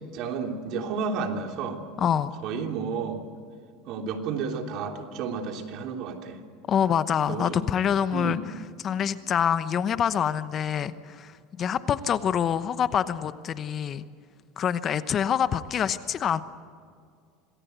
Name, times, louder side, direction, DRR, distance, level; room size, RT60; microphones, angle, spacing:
voice 1, 0.1-1.8 2.4-3.2 3.9-6.4 7.3-7.6 8.1-8.4, right 5 dB, 55° right, 4 dB, 3.2 m, -31 dB
voice 2, 2.0-2.3 6.7-8.4 8.8-14.0 14.6-16.4, left 8 dB, 35° left, 13 dB, 0.9 m, -26 dB
26.5 x 19.5 x 8.1 m, 2.2 s
supercardioid pair, 130°, 0 cm